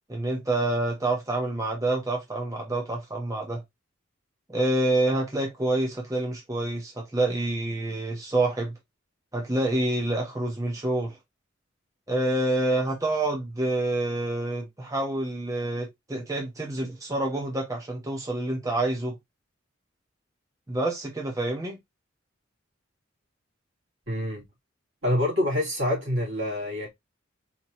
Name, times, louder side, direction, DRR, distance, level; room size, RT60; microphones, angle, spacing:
voice 1, 0.1-3.6 4.5-8.7 9.3-11.2 12.1-19.2 20.7-21.8, right 2 dB, 15° right, 0.8 m, -27 dB
voice 2, 24.1-24.4 25.0-26.9, left 1 dB, 70° right, 2.7 m, -26 dB
4.4 x 2.9 x 2.9 m
head